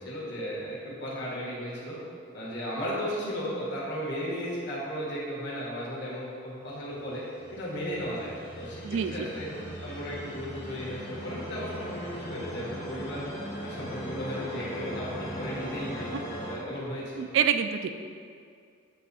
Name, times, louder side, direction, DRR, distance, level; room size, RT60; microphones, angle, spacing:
voice 1, 0.0-2.0 2.3-7.2 7.5-9.5 9.8-13.2 13.6-16.1 16.4-17.3, equal, 60° left, -6 dB, 1.5 m, -35 dB
sound 1, 6.9-16.5, equal, 45° left, 1.2 m, -39 dB
voice 2, 8.8-9.3 16.1-16.2 17.2-18.0, right 7 dB, 75° right, 9 dB, 0.3 m, -27 dB
8.3 x 2.8 x 4.1 m, 2.3 s
head